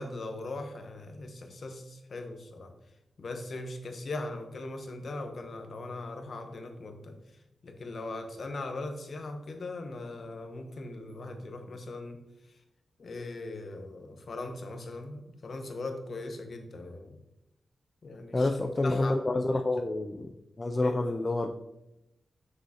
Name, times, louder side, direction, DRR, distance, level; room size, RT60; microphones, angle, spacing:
voice 1, 0.0-2.7 3.2-7.2 7.6-12.2 13.0-17.2 18.0-19.2 20.8-21.0, left 2 dB, 55° left, 5 dB, 0.9 m, -39 dB
voice 2, 18.3-21.5, left 2 dB, 25° left, 4 dB, 0.4 m, -28 dB
7.2 x 6.4 x 2.8 m, 0.91 s
wide cardioid pair, 115°, 0 cm